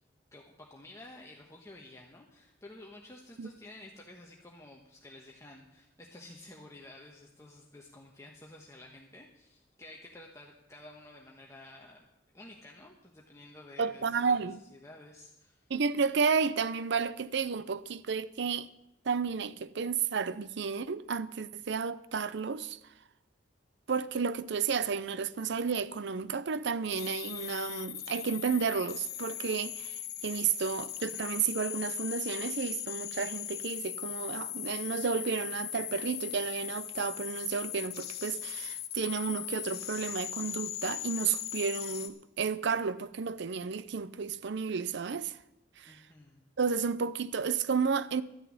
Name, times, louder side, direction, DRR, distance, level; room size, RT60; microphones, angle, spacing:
voice 1, 0.3-14.4 14.7-15.7 45.8-46.5, left 1 dB, 15° left, 1.2 m, -52 dB
voice 2, 13.8-14.6 15.7-18.7 19.0-22.8 23.9-45.4 45.8-46.0 46.6-48.2, right 5 dB, 65° right, 0.5 m, -32 dB
sound 1, 26.9-42.1, left 13 dB, 60° left, 1.1 m, -39 dB
13.0 x 6.7 x 9.6 m
head